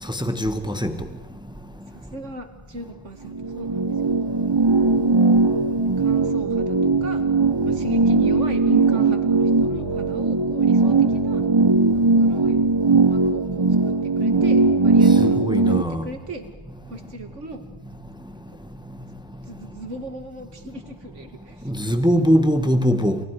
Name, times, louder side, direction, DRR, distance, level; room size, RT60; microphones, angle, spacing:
voice 1, 0.1-1.1 15.2-16.1 21.6-23.2, equal, 5° right, 1.3 m, -21 dB
voice 2, 1.9-3.8 6.0-7.2 7.6-11.4 11.9-12.6 12.9-16.4 16.9-17.6 18.5-18.6 19.4-21.7, right 3 dB, 85° right, 2.4 m, -37 dB
sound 1, 3.3-15.8, right 3 dB, 25° right, 0.9 m, -19 dB
29.5 x 28.0 x 4.8 m
omnidirectional pair, 1.2 m